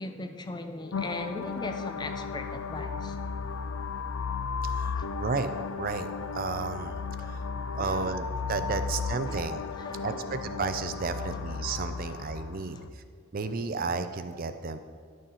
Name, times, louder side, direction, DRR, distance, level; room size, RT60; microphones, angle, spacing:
voice 1, 0.0-3.2 4.9-5.1 7.8-8.2 8.7-8.8 9.3-9.4 9.8-10.2, left 2 dB, 20° left, 6 dB, 0.6 m, -39 dB
sound 1, 0.9-12.9, left 5 dB, 75° left, 0.4 m, -34 dB
voice 2, 4.6-7.4 7.7-9.6 10.0-13.0 13.3-14.8, right 4 dB, 45° right, 10 dB, 0.5 m, -33 dB
10.5 x 6.4 x 5.6 m, 2.1 s
head